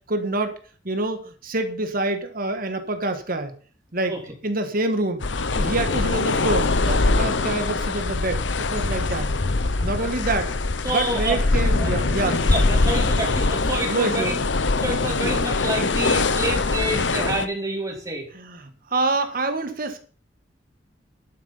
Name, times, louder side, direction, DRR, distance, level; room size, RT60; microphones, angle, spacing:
voice 1, 0.1-0.6 0.8-3.5 3.9-4.1 4.4-5.2 5.5-9.3 9.8-10.5 10.9-12.4 13.9-14.4 18.3-20.0, right 2 dB, 50° right, 7 dB, 1.6 m, -26 dB
sound 1, 5.2-17.5, left 3 dB, 75° left, 0.9 m, -23 dB
voice 2, 10.8-11.4 11.8-11.9 12.2-14.4 14.8-18.3, right 1 dB, 20° right, 0 dB, 3.9 m, -28 dB
11.5 x 9.6 x 5.6 m, 0.42 s
head